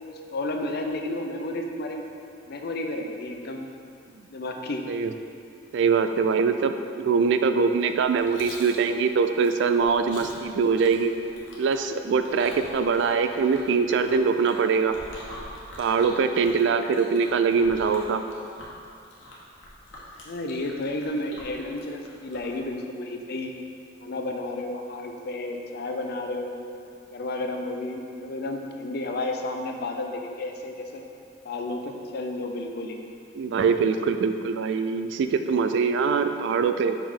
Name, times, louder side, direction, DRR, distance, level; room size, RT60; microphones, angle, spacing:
voice 1, 0.1-2.0 2.5-3.7 4.3-4.9 20.2-23.5 24.0-26.6 27.1-31.0 31.4-33.0, left 2 dB, 55° left, 3 dB, 0.5 m, -32 dB
voice 2, 5.7-11.1 11.6-15.0 15.8-18.2 33.3-37.0, right 5 dB, 65° right, 9 dB, 0.3 m, -23 dB
Chewing mastication, 7.8-22.6, left 1 dB, 90° left, 1.1 m, -45 dB
5.4 x 4.9 x 3.7 m, 2.4 s
head